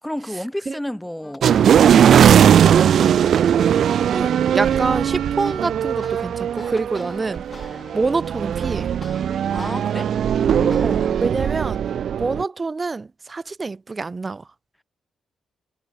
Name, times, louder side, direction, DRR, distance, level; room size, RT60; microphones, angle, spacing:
voice 1, 0.0-1.5 1.9-3.4 9.5-10.1 10.4-11.2, left 1 dB, 5° left, 3.8 m, -32 dB
sound 1, 1.2-3.7 4.1-9.7 10.1-11.2, left 4 dB, 35° left, 5.0 m, -44 dB
sound 2, 1.4-12.4, right 9 dB, 70° right, 0.9 m, -18 dB
Wind instrument woodwind instrument, 2.4-7.2, right 16 dB, 85° right, 5.9 m, -37 dB
voice 2, 4.1-7.4 7.9-8.9 10.8-11.8 12.2-14.4, right 3 dB, 35° right, 1.3 m, -26 dB
supercardioid pair, 50°, 0 cm